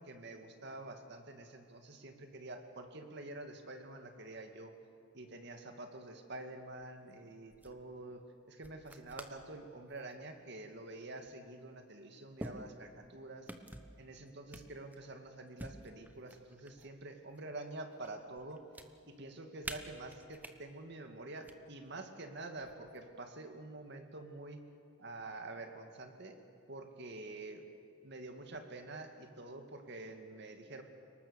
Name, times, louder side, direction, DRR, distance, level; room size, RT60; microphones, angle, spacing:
voice 1, 0.0-4.7 5.1-13.5 14.0-18.6 19.1-24.6 25.0-26.4 26.7-27.7 28.0-30.8, right 2 dB, 60° right, 5 dB, 2.2 m, -47 dB
sound 1, 7.1-7.2 7.5-7.8 8.6-9.5 9.9-10.2 11.3-11.4 12.4-13.1 13.5-14.0 14.5-15.1 15.6-16.9 17.3-18.1 18.4-18.9 19.6-20.5 21.3-21.5 22.6-23.1, right 1 dB, 10° right, 1.2 m, -48 dB
29.5 x 19.0 x 7.1 m, 2.5 s
head